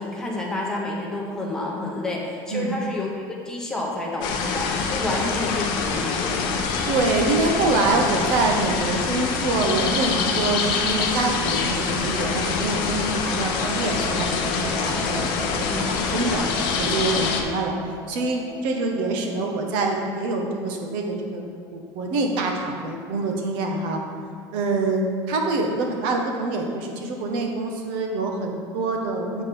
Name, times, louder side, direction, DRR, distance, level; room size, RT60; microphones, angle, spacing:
voice 1, 0.0-6.5 15.7-15.8, left 2 dB, 5° left, -2 dB, 0.9 m, -29 dB
sound 1, 4.2-17.4, left 5 dB, 55° left, 0.7 m, -25 dB
voice 2, 6.9-16.4 16.8-17.7 18.1-24.0 24.5-29.4, right 3 dB, 60° right, 2 dB, 1.0 m, -25 dB
sound 2, 12.8-21.4, left 3 dB, 25° left, 0.4 m, -38 dB
8.3 x 4.1 x 5.2 m, 2.1 s
cardioid pair, 180°, 9 cm